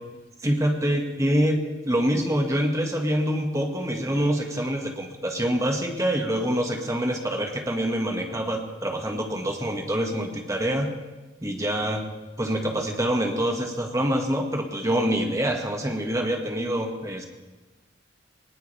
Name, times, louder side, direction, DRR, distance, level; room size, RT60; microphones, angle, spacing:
voice 1, 0.4-10.9 11.4-12.0 12.4-17.2, equal, 15° right, 2 dB, 1.9 m, -25 dB
21.5 x 19.5 x 3.5 m, 1.2 s
head